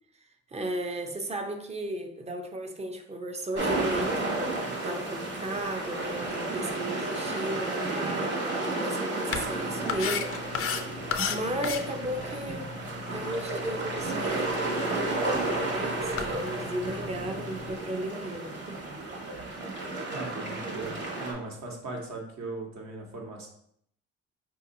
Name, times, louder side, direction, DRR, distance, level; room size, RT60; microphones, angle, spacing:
voice 1, 0.5-10.3 11.3-12.7 13.1-15.3 15.7-18.8, right 1 dB, 20° right, 5 dB, 0.5 m, -35 dB
sound 1, 3.5-21.3, right 2 dB, 35° right, 1.3 m, -32 dB
sound 2, 9.3-17.8, left 7 dB, 50° left, 0.4 m, -37 dB
voice 2, 20.1-23.5, right 2 dB, 65° right, 0 dB, 1.1 m, -38 dB
4.4 x 2.7 x 2.6 m, 0.69 s
cardioid pair, 90°, 30 cm